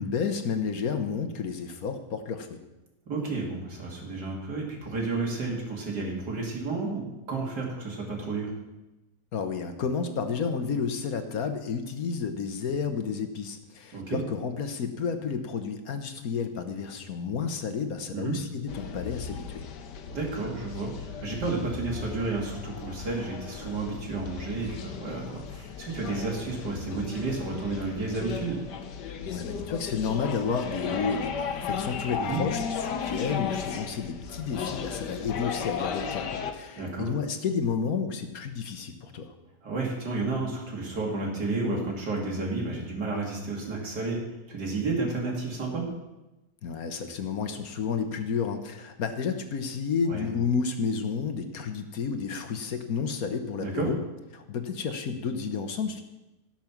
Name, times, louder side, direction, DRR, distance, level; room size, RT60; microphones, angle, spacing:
voice 1, 0.0-2.6 9.3-19.6 29.2-39.3 46.6-54.0 54.3-56.0, left 5 dB, 65° left, 7 dB, 1.4 m, -31 dB
voice 2, 3.1-8.5 13.9-14.2 18.1-18.4 20.1-28.6 32.2-32.4 36.8-37.1 39.6-45.9 50.1-50.3 53.6-53.9, right 3 dB, 75° right, -1 dB, 3.2 m, -31 dB
sound 1, 18.7-36.5, left 7 dB, 90° left, 1.6 m, -35 dB
17.0 x 6.0 x 6.0 m, 1.0 s
omnidirectional pair, 1.8 m